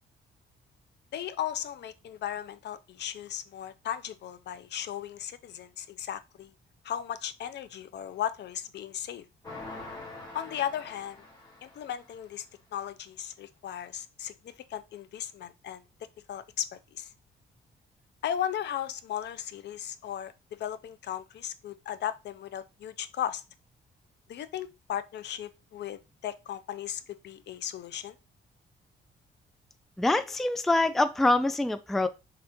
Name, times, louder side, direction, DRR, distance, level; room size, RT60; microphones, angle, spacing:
voice 1, 1.1-6.5 6.8-9.3 10.3-11.2 11.6-12.5 12.7-15.8 16.3-17.1 18.2-23.4 24.3-28.1, left 10 dB, 60° left, 0.5 m, -36 dB
sound 1, 9.4-12.2, left 2 dB, 20° left, 1.7 m, -44 dB
voice 2, 30.0-32.1, left 2 dB, ahead, 0.3 m, -25 dB
3.6 x 2.9 x 3.4 m
cardioid pair, 90°, 20 cm